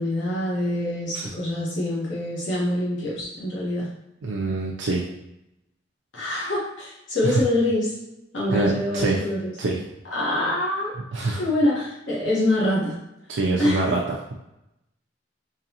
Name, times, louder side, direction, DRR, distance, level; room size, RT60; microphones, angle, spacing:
voice 1, 0.0-3.9 6.1-7.9 8.3-9.5 10.1-10.9 11.4-13.0 13.6-13.8, left 1 dB, 85° left, -6 dB, 1.1 m, -25 dB
voice 2, 4.2-5.0 7.2-7.4 8.5-9.2 9.6-9.8 11.1-11.4 13.3-14.0, right 3 dB, 80° right, -2 dB, 0.5 m, -24 dB
3.8 x 3.0 x 2.8 m, 0.87 s
head